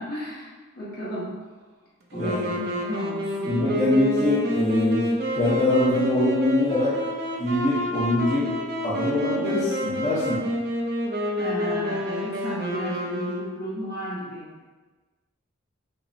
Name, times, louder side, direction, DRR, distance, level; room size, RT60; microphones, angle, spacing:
voice 1, 0.0-1.3 2.1-3.6 11.4-14.5, equal, 45° left, -7 dB, 1.1 m, -33 dB
voice 2, 2.1-2.6 3.5-7.0 7.4-8.5 8.8-10.4, left 1 dB, 30° left, -12 dB, 0.8 m, -23 dB
Wind instrument woodwind instrument, 2.1-13.8, left 1 dB, 50° right, 0.5 m, -29 dB
5.5 x 2.1 x 2.7 m, 1.3 s
head